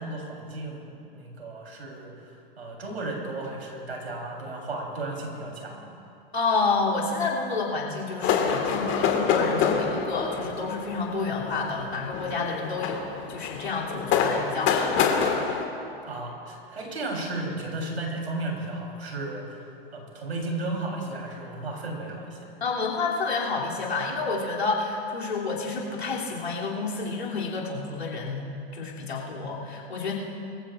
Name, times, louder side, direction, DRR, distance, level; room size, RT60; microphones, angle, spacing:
voice 1, 0.0-5.9 16.1-19.6 19.9-22.5, right 2 dB, 90° right, -1 dB, 3.8 m, -34 dB
voice 2, 6.3-15.0 22.6-30.1, left 4 dB, 90° left, -4 dB, 3.1 m, -29 dB
sound 1, 8.2-15.7, left 6 dB, 40° left, 1.9 m, -27 dB
23.5 x 15.5 x 2.5 m, 2.6 s
hypercardioid pair, 100°, 31 cm